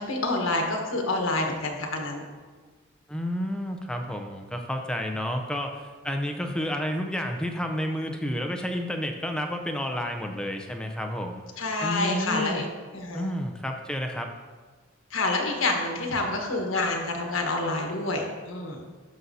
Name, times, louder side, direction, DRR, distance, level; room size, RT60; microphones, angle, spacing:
voice 1, 0.0-2.2 11.6-12.6 12.9-13.3 15.1-18.8, left 2 dB, 80° left, 1 dB, 1.2 m, -28 dB
voice 2, 3.1-11.4 11.8-12.6 13.1-14.3, equal, 5° left, 3 dB, 0.5 m, -30 dB
12.0 x 5.4 x 2.8 m, 1.4 s
head